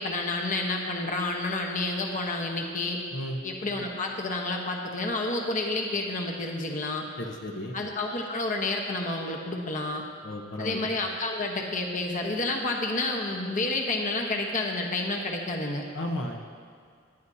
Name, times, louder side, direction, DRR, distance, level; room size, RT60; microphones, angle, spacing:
voice 1, 0.0-3.0 3.4-7.1 7.7-10.0 10.6-15.8, left 2 dB, 45° left, 1 dB, 1.1 m, -30 dB
voice 2, 7.2-7.7 10.2-10.9 15.9-16.4, left 1 dB, 70° left, 1 dB, 1.0 m, -33 dB
18.0 x 11.0 x 2.7 m, 2.1 s
head